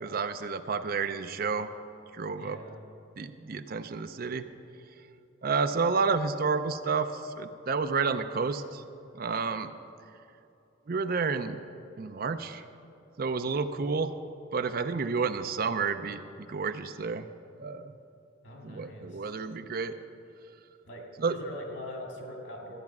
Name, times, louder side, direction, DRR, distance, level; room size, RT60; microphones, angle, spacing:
voice 1, 0.0-1.7 2.1-2.6 3.2-4.5 5.4-8.8 9.1-9.7 10.9-11.6 12.0-12.6 13.2-14.1 14.5-17.3 17.6-17.9 18.6-19.9 21.2-21.4, right 4 dB, 45° right, 10 dB, 0.4 m, -30 dB
voice 2, 2.4-2.8 18.4-19.2 20.8-21.0 21.3-22.8, left 1 dB, 60° left, 0 dB, 2.2 m, -42 dB
14.0 x 9.6 x 5.9 m, 2.6 s
head